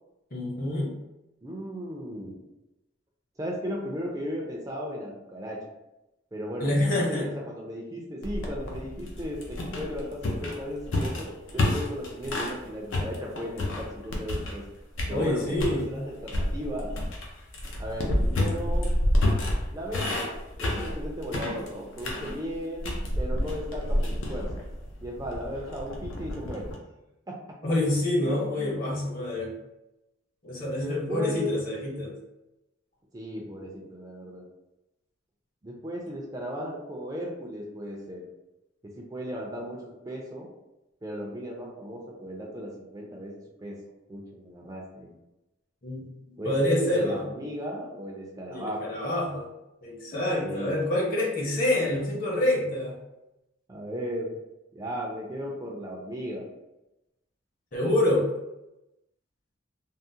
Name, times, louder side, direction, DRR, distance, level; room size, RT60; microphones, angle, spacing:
voice 1, 0.3-0.9 6.6-7.3 15.1-16.0 27.6-29.5 30.4-32.1 45.8-47.3 48.5-49.5 49.8-53.0 57.7-58.3, left 1 dB, 45° left, -3 dB, 0.8 m, -27 dB
voice 2, 1.4-2.4 3.4-5.6 6.3-14.6 15.1-16.9 17.8-18.9 19.7-24.5 25.0-26.7 27.3-27.6 28.2-29.0 30.7-31.6 33.1-34.5 35.6-38.2 38.8-40.5 41.0-43.8 44.1-45.2 46.4-48.8 50.4-50.8 53.7-54.4 54.7-56.5, equal, 20° right, -1 dB, 0.4 m, -36 dB
sound 1, 8.2-12.6 12.9-14.7 15.0-15.8 16.3-26.8, left 1 dB, 85° left, 0.6 m, -29 dB
3.6 x 2.0 x 2.7 m, 0.94 s
head